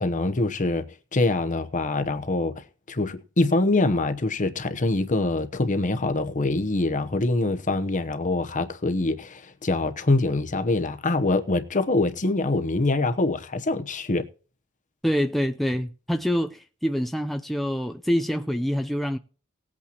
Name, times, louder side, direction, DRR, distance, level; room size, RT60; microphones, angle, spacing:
voice 1, 0.0-0.9 1.1-14.2, left 2 dB, 35° left, 0.9 m, -24 dB
voice 2, 15.0-19.2, equal, ahead, 0.5 m, -26 dB
19.0 x 8.5 x 2.9 m
head